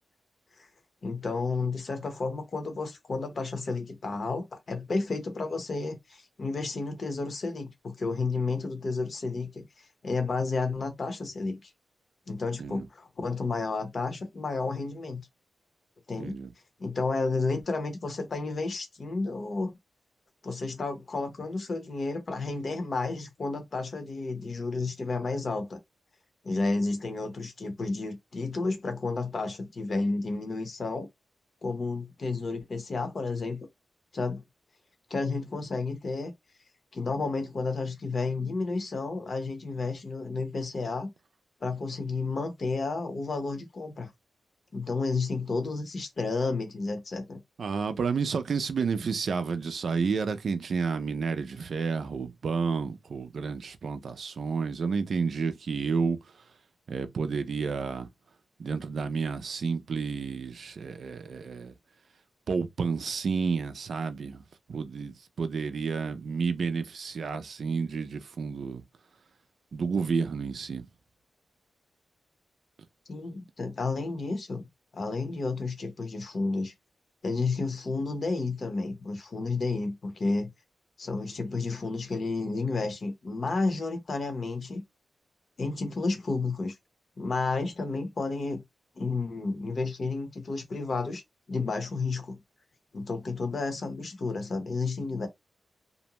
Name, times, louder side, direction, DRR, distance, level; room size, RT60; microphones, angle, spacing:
voice 1, 1.0-9.6 10.0-11.7 12.3-15.2 16.1-16.4 16.8-19.7 20.4-25.8 26.4-31.1 31.6-33.7 34.1-34.4 35.1-36.3 36.9-41.1 41.6-44.1 44.7-47.4 73.1-74.7 74.9-76.7 77.2-80.5 81.0-84.8 85.6-86.7 87.2-88.6 89.0-91.2 91.5-92.4 92.9-95.3, left 3 dB, 55° left, 0.9 m, -31 dB
voice 2, 16.2-16.5 47.6-56.4 56.9-58.1 58.6-61.7 62.5-64.4 64.7-68.8 69.7-70.9, right 5 dB, 65° right, 0.4 m, -30 dB
2.5 x 2.1 x 2.9 m
wide cardioid pair, 95°, 0 cm